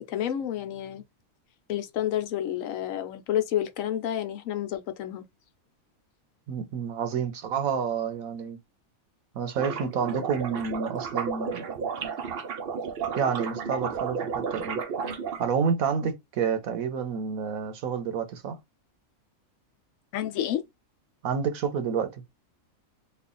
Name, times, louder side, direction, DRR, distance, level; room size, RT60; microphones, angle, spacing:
voice 1, 0.1-1.0 1.7-5.2 20.1-20.6, left 11 dB, 75° left, 1.0 m, -29 dB
voice 2, 6.5-8.6 9.3-11.6 13.2-14.8 15.4-18.6 21.2-22.2, right 6 dB, 85° right, 1.3 m, -29 dB
sound 1, 9.6-15.4, right 6 dB, 55° right, 0.7 m, -33 dB
3.2 x 2.4 x 3.7 m
omnidirectional pair, 1.4 m